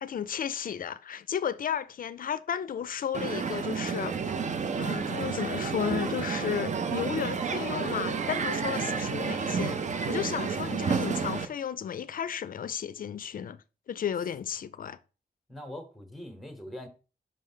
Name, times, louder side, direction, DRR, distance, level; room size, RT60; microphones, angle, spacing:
voice 1, 0.0-4.3 4.8-9.8 10.1-13.6 13.9-15.0, left 8 dB, 55° left, 0.4 m, -33 dB
Crowd, 3.1-11.5, right 5 dB, 45° right, 0.5 m, -30 dB
voice 2, 15.5-16.9, left 1 dB, ahead, 0.9 m, -42 dB
5.6 x 3.2 x 5.6 m
wide cardioid pair, 175°, 17 cm